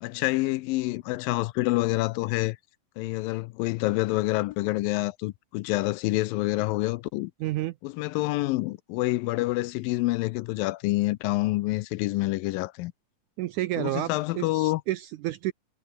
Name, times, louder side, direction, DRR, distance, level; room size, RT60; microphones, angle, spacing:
voice 1, 0.0-2.6 3.0-7.3 7.8-12.9 13.8-14.8, left 19 dB, 80° left, 2.3 m, -27 dB
voice 2, 7.4-7.7 13.4-15.5, right 16 dB, 80° right, 1.8 m, -30 dB
omnidirectional pair, 4.2 m